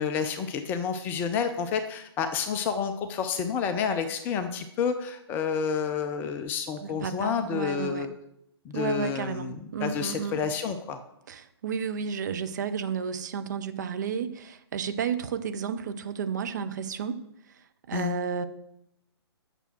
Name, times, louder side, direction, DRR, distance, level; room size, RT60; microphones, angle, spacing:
voice 1, 0.0-8.1 8.7-9.6 9.8-11.0 17.9-18.2, left 6 dB, 15° left, 8 dB, 0.4 m, -29 dB
voice 2, 6.8-8.1 8.7-10.4 11.3-17.2 17.9-18.5, right 7 dB, 40° right, 9 dB, 0.8 m, -32 dB
8.9 x 6.7 x 6.1 m, 0.79 s
figure-of-eight pair, 130°, 14 cm